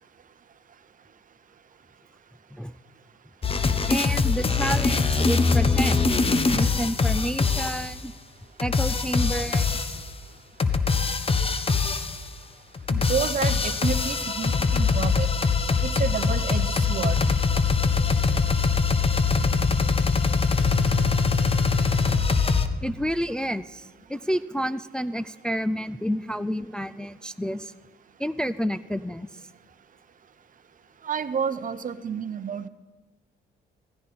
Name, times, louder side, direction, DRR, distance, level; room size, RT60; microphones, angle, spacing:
sound 1, 3.4-7.9 8.6-10.1 10.6-12.3 12.7-22.7, left 4 dB, 30° left, 0.9 m, -23 dB
voice 1, 3.9-6.1 6.5-8.1 8.6-10.0 22.8-27.7 28.2-29.3, equal, 5° left, 12 dB, 0.4 m, -29 dB
voice 2, 12.9-15.3 15.8-17.2 31.0-32.7, right 6 dB, 40° right, 12 dB, 0.8 m, -30 dB
16.5 x 14.0 x 4.3 m, 1.2 s
cardioid pair, 90°, 20 cm